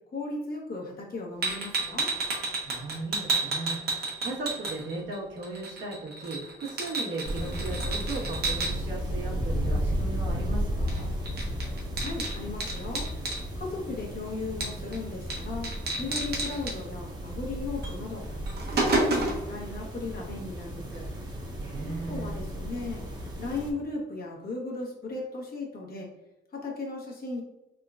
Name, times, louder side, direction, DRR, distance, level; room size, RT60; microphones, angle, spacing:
voice 1, 0.1-2.1 12.0-13.1 13.6-18.3 18.7-21.1 21.8-23.0 23.4-26.1 26.5-27.4, left 3 dB, 50° left, -2 dB, 1.2 m, -36 dB
sound 1, 1.4-5.2 5.4-8.7 10.9-11.0 11.3-13.4 14.6-15.0 15.3-15.4 15.6-16.7 17.8-17.9 18.3-19.5, right 3 dB, 55° right, 1.1 m, -30 dB
voice 2, 2.7-11.1 21.6-22.4, right 3 dB, 70° right, -4 dB, 1.3 m, -37 dB
sound 2, 7.2-23.7, equal, 20° right, 1.0 m, -34 dB
3.7 x 3.7 x 2.4 m, 0.97 s
cardioid pair, 90°, 20 cm